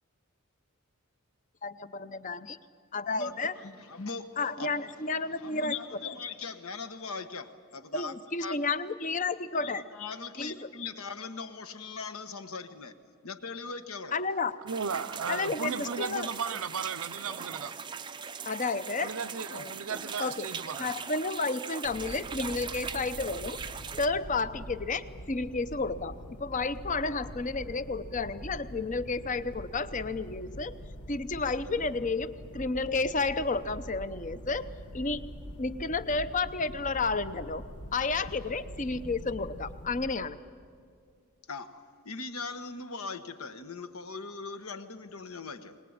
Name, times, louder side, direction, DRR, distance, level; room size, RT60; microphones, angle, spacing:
voice 1, 1.6-2.6 2.9-3.5 4.4-5.7 7.9-9.8 10.4-10.6 14.1-14.6 15.3-16.3 18.4-19.1 19.5-19.7 20.2-20.5 20.8-23.6 24.0-30.7 31.1-34.7 34.9-35.2 35.6-37.6 37.9-40.4, left 3 dB, 35° left, 0.7 m, -31 dB
voice 2, 3.2-8.5 9.6-13.0 13.2-14.2 41.5-45.8, left 4 dB, 75° left, 1.3 m, -40 dB
voice 3, 14.6-17.8 19.0-20.9, right 6 dB, 70° right, 0.6 m, -35 dB
sound 1, 14.7-24.1, right 6 dB, 20° right, 0.5 m, -40 dB
sound 2, 21.8-40.1, equal, 90° left, 1.4 m, -44 dB
22.5 x 20.0 x 8.8 m
head